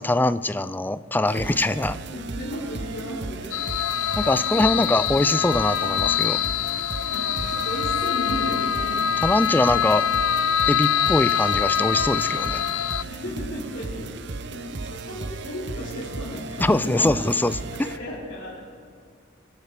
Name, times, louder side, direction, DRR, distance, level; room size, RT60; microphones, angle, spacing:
voice 1, 0.0-2.0 4.2-6.4 9.2-10.0 10.7-12.6 16.6-17.6, left 2 dB, 10° left, 15 dB, 0.4 m, -23 dB
sound 1, 1.3-18.0, right 3 dB, 60° right, 0.7 m, -35 dB
voice 2, 2.1-3.5 4.0-4.2 4.6-5.0 7.1-9.0 13.1-14.1 14.5-17.1 17.7-18.6, left 1 dB, 70° left, -9 dB, 4.1 m, -35 dB
sound 2, 3.5-13.0, left 9 dB, 90° left, 0.5 m, -24 dB
25.5 x 11.5 x 4.9 m, 2.4 s
head